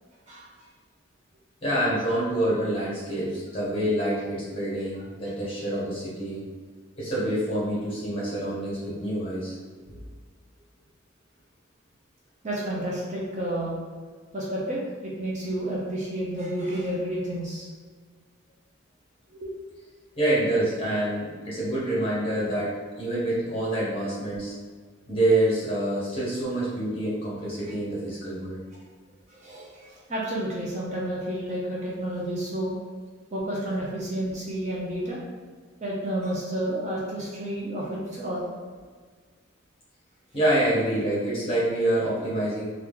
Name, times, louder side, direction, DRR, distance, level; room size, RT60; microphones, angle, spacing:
voice 1, 1.6-6.4 6.9-9.6 9.9-10.0 20.2-22.7 23.0-24.5 25.1-28.6 40.3-42.6, right 1 dB, 25° left, -7 dB, 1.5 m, -26 dB
voice 2, 12.4-13.7 14.3-17.7 19.3-19.5 27.6-27.7 29.3-32.7 33.3-35.2 35.8-38.5, right 1 dB, 35° right, -5 dB, 0.6 m, -30 dB
3.0 x 2.4 x 3.7 m, 1.5 s
head